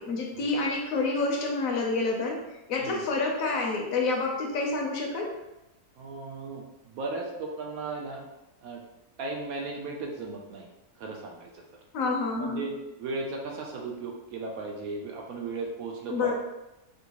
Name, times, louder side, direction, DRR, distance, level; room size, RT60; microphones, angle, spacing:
voice 1, 0.0-2.4 2.7-5.3 11.9-12.7 16.1-16.3, left 3 dB, 70° left, 0 dB, 0.9 m, -28 dB
voice 2, 6.0-8.3 8.6-8.8 9.2-10.7 11.0-11.8 12.3-12.7 13.0-16.3, right 3 dB, 70° right, 0 dB, 1.0 m, -36 dB
3.8 x 2.4 x 2.8 m, 0.99 s
omnidirectional pair, 1.7 m